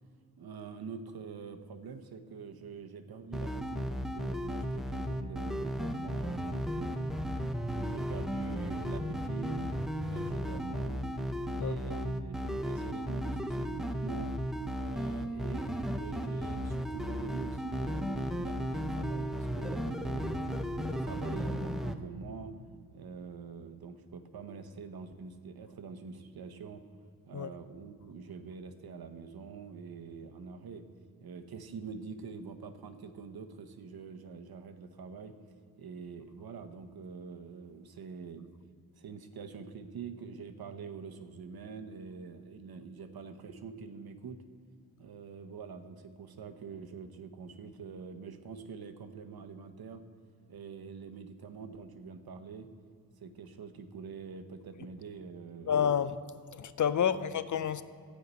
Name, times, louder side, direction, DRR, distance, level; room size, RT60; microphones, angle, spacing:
voice 1, 0.4-7.2 7.7-9.6 10.0-11.1 11.6-14.3 14.8-20.5 20.8-22.6 22.9-26.8 27.3-30.9 31.2-35.4 35.8-38.5 39.0-44.4 45.0-50.0 50.5-52.7 53.2-56.0 57.0-57.3, right 5 dB, 75° right, 0.9 m, -45 dB
sound 1, 3.3-22.0, equal, ahead, 0.6 m, -35 dB
voice 2, 11.6-12.0 27.3-27.5 55.7-57.8, left 8 dB, 55° left, 0.5 m, -30 dB
13.5 x 5.5 x 8.2 m
wide cardioid pair, 100°, 37 cm